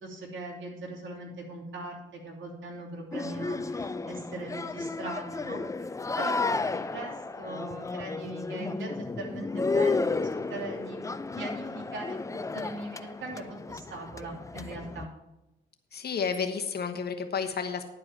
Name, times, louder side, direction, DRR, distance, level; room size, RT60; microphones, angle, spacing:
voice 1, 0.0-5.6 6.2-10.2 10.5-11.0 11.4-15.1, right 2 dB, 70° right, -2 dB, 2.9 m, -40 dB
sound 1, 3.1-15.1, left 3 dB, 15° left, 0.4 m, -32 dB
voice 2, 15.9-17.9, left 6 dB, 50° left, 6 dB, 1.1 m, -31 dB
10.5 x 4.8 x 7.5 m, 0.94 s
cardioid pair, 95°, 21 cm